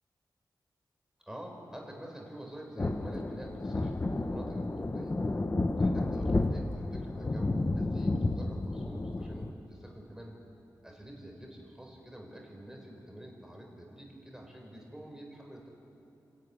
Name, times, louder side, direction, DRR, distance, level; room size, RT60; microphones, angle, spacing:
voice 1, 1.2-5.2 5.8-10.4 10.8-15.7, right 1 dB, 5° right, 0 dB, 4.4 m, -47 dB
sound 1, 2.8-9.5, left 2 dB, 30° left, 0.9 m, -31 dB
28.0 x 12.5 x 9.6 m, 2.9 s
wide cardioid pair, 100°, 8 cm